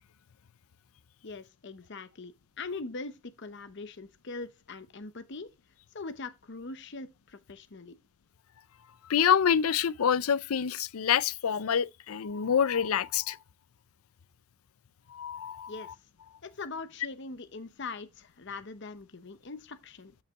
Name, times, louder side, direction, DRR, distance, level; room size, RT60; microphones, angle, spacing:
voice 1, 1.2-5.5 5.9-8.0 15.7-15.9 16.4-20.1, left 3 dB, 55° left, 0.8 m, -42 dB
voice 2, 9.1-13.4 15.1-15.7, left 8 dB, 90° left, 0.5 m, -26 dB
13.0 x 5.6 x 3.6 m
head